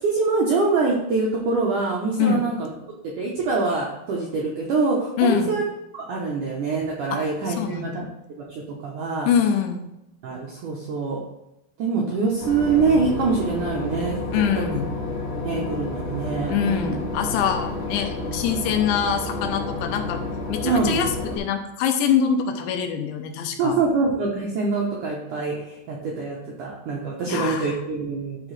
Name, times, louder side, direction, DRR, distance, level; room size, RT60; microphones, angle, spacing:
voice 1, 0.0-2.7 3.2-5.6 5.9-8.0 8.5-9.3 10.2-11.2 11.8-14.2 15.4-16.9 20.6-21.0 23.6-28.4, right 4 dB, 80° right, -3 dB, 1.8 m, -24 dB
voice 2, 5.2-5.6 7.1-7.2 7.5-8.0 9.3-9.8 14.3-14.9 16.5-20.2 20.5-23.8 27.2-27.8, left 7 dB, 85° left, 5 dB, 3.2 m, -24 dB
Boat Water vehicle / Engine, 12.4-21.4, left 2 dB, 40° left, 0.9 m, -30 dB
13.0 x 4.9 x 3.3 m, 0.88 s
omnidirectional pair, 5.2 m